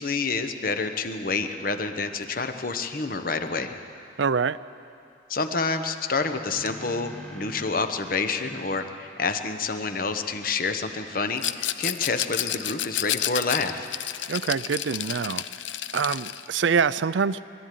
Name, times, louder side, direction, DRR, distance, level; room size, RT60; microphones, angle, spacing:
voice 1, 0.0-3.7 5.3-13.9, left 4 dB, 50° left, 8 dB, 1.1 m, -28 dB
sound 1, 3.6-3.7 6.1-7.9 8.4-11.8, equal, 5° left, 1.7 m, -46 dB
voice 2, 4.2-4.6 14.3-15.4 15.9-17.4, right 6 dB, 75° right, 17 dB, 0.5 m, -25 dB
Rattle, 11.4-16.5, left 12 dB, 80° left, 0.6 m, -30 dB
22.0 x 13.5 x 9.3 m, 2.6 s
head